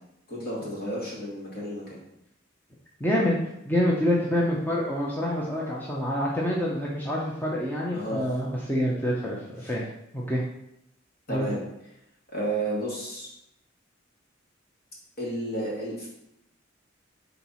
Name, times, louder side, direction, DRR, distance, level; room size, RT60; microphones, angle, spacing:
voice 1, 0.3-2.0 7.9-8.3 9.6-9.7 11.3-11.6 12.3-13.3 15.2-16.1, right 1 dB, 50° left, -5 dB, 2.5 m, -32 dB
voice 2, 3.0-9.9 10.1-10.4 11.3-11.5, equal, 10° left, -4 dB, 0.7 m, -27 dB
4.5 x 4.0 x 5.5 m, 0.80 s
head